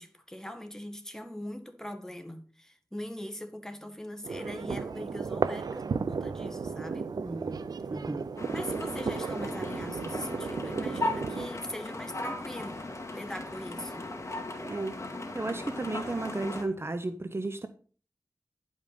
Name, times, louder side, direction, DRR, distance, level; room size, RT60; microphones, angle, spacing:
voice 1, 0.0-7.1 8.5-12.8 13.1-14.0, left 1 dB, 10° left, 1.8 m, -41 dB
sound 1, 4.2-11.5, right 5 dB, 85° right, 0.5 m, -34 dB
voice 2, 7.2-8.3 14.6-14.9 15.3-17.7, right 2 dB, 40° right, 0.8 m, -34 dB
sound 2, 8.4-16.6, left 2 dB, 45° left, 2.4 m, -37 dB
10.5 x 5.4 x 5.3 m
cardioid pair, 45°, 7 cm